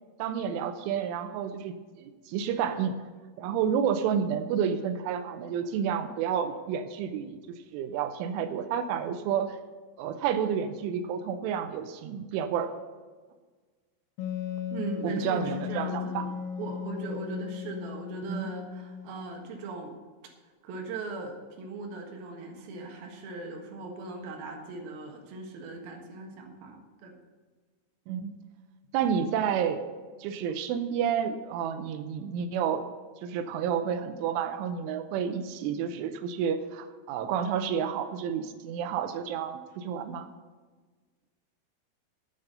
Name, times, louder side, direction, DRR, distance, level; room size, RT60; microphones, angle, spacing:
voice 1, 0.2-3.0 3.4-9.6 10.0-12.7 15.0-16.3 18.3-18.5 28.1-28.4 28.9-29.8 30.2-32.9 33.2-40.3, right 8 dB, 80° right, 10 dB, 3.1 m, -30 dB
Wind instrument woodwind instrument, 14.2-19.6, left 9 dB, 90° left, 3.8 m, -36 dB
voice 2, 14.7-19.9 20.6-27.2, right 3 dB, 60° right, 2 dB, 2.8 m, -39 dB
9.3 x 9.1 x 6.7 m, 1.4 s
omnidirectional pair, 5.7 m